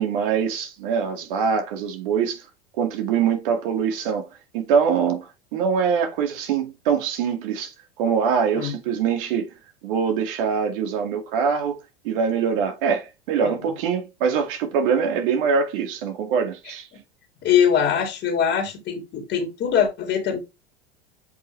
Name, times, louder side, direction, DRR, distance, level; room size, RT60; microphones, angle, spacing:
voice 1, 0.0-2.4 2.8-4.3 4.5-5.3 5.5-9.5 9.8-11.8 12.0-16.9, right 6 dB, 55° right, 2.3 m, -23 dB
voice 2, 17.4-20.4, left 8 dB, 35° left, 2.4 m, -22 dB
8.0 x 5.2 x 3.3 m
figure-of-eight pair, 85°, 31 cm